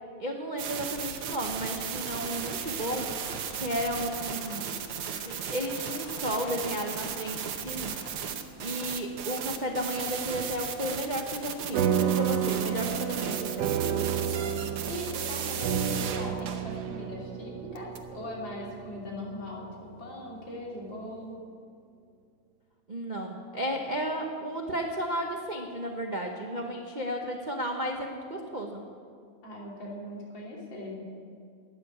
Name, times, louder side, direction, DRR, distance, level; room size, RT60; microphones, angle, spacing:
voice 1, 0.2-3.3 3.5-4.8 5.2-8.0 8.6-13.7 22.9-28.9, equal, 35° right, 1 dB, 0.8 m, -33 dB
sound 1, 0.6-17.0 17.8-18.0, right 8 dB, 85° right, 1.9 m, -36 dB
sound 2, 2.2-8.1, left 2 dB, 45° left, 2.1 m, -49 dB
sound 3, 11.7-20.5, right 8 dB, 70° right, 1.2 m, -31 dB
voice 2, 14.2-21.3 29.4-31.0, left 1 dB, 60° left, -4 dB, 3.8 m, -40 dB
13.0 x 9.4 x 9.7 m, 2.3 s
omnidirectional pair, 2.3 m